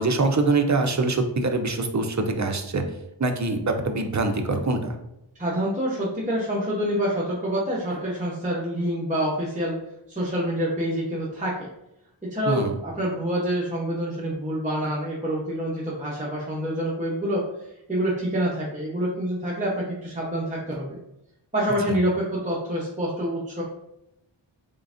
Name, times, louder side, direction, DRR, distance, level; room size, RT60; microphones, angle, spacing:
voice 1, 0.0-2.8 3.2-4.9 12.5-12.8 21.9-22.0, right 3 dB, 40° right, 5 dB, 0.5 m, -24 dB
voice 2, 5.4-9.8 10.1-11.7 12.2-17.4 17.9-21.0 21.5-23.6, equal, 15° right, -6 dB, 0.8 m, -27 dB
3.7 x 3.5 x 2.5 m, 0.84 s
wide cardioid pair, 50°, 48 cm